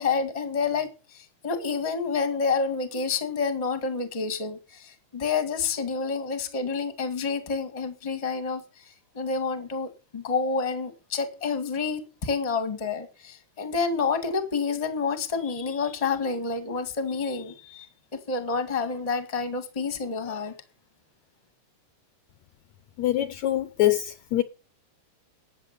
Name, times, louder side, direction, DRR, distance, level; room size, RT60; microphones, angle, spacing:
voice 1, 0.0-17.9 18.1-20.5, left 4 dB, 15° left, 1.4 m, -29 dB
voice 2, 23.0-24.4, left 14 dB, 70° left, 1.9 m, -24 dB
12.5 x 9.0 x 6.8 m
omnidirectional pair, 3.8 m